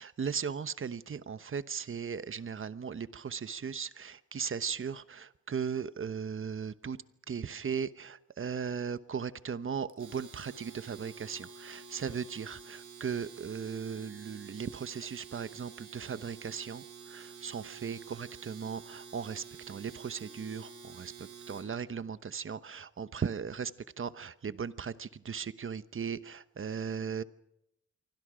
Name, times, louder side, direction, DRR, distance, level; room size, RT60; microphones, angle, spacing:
voice 1, 0.0-7.0 7.3-23.7 24.0-27.2, right 6 dB, 45° right, 14 dB, 1.0 m, -37 dB
Domestic sounds home sounds, 9.9-21.7, right 6 dB, 80° right, 6.4 m, -50 dB
28.0 x 24.5 x 5.1 m, 0.81 s
wide cardioid pair, 130°, 30 cm